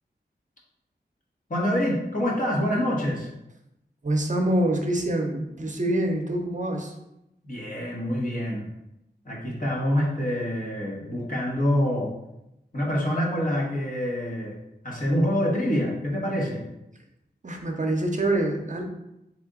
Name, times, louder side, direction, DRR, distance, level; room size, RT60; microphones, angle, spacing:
voice 1, 1.5-3.3 7.4-8.7 9.2-12.1 12.7-14.6 14.8-16.6, equal, 50° left, -3 dB, 1.1 m, -26 dB
voice 2, 4.0-6.9 17.4-18.8, right 1 dB, 45° right, 2 dB, 0.7 m, -25 dB
3.8 x 3.3 x 3.7 m, 0.88 s
wide cardioid pair, 80°, 18 cm